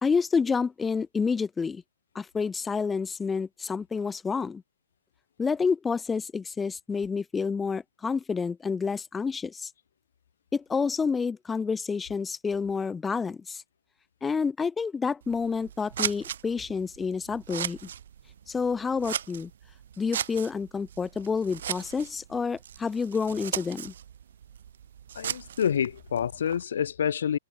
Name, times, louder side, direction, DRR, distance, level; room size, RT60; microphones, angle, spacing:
voice 1, 0.0-1.8 2.1-4.6 5.4-9.7 10.5-13.6 14.2-17.9 18.5-19.5 20.0-23.9, left 5 dB, 5° left, 0.6 m, -29 dB
Scissors, 15.2-26.6, right 9 dB, 60° right, 1.1 m, -38 dB
voice 2, 25.1-27.4, left 8 dB, 80° left, 1.0 m, -27 dB
hypercardioid pair, 175°, 0 cm